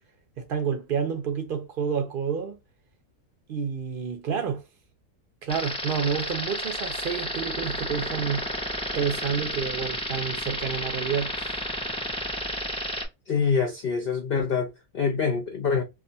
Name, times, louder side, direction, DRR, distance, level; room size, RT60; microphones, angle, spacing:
voice 1, 0.4-2.6 3.5-4.6 5.4-8.4 8.9-11.6, right 7 dB, 60° right, 0.5 m, -29 dB
sound 1, 5.5-13.1, equal, 5° left, 0.4 m, -31 dB
voice 2, 13.3-15.8, left 5 dB, 60° left, 0.6 m, -25 dB
2.5 x 2.4 x 3.9 m
omnidirectional pair, 1.6 m